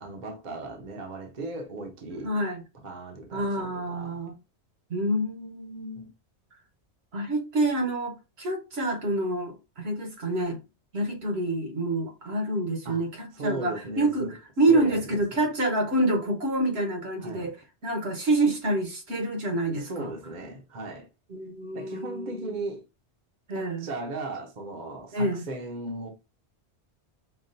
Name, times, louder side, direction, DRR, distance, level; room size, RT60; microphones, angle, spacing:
voice 1, 0.0-2.3 2.8-4.2 5.9-6.0 12.8-13.1 13.3-14.4 14.7-15.5 17.2-17.5 19.7-21.1 21.7-22.8 23.5-26.1, right 2 dB, 45° right, 0.9 m, -37 dB
voice 2, 2.2-2.6 3.3-4.3 4.9-6.1 7.1-10.6 10.9-17.5 17.8-20.1 21.3-22.6 23.5-23.9 25.1-25.4, right 1 dB, 70° right, 1.4 m, -27 dB
5.7 x 2.3 x 2.6 m
omnidirectional pair, 1.1 m